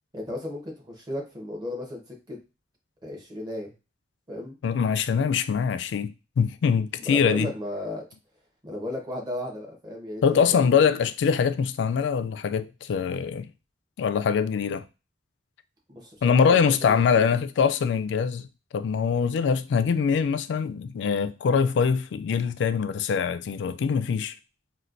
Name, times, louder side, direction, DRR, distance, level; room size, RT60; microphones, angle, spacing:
voice 1, 0.1-2.4 3.0-3.7 4.3-4.6 7.0-8.0 8.6-10.8 15.9-17.3, left 1 dB, 25° right, 1.0 m, -35 dB
voice 2, 4.6-7.5 10.2-13.5 14.0-14.8 16.2-18.5 18.7-24.3, left 6 dB, 80° left, 0.3 m, -23 dB
4.2 x 2.2 x 2.5 m
head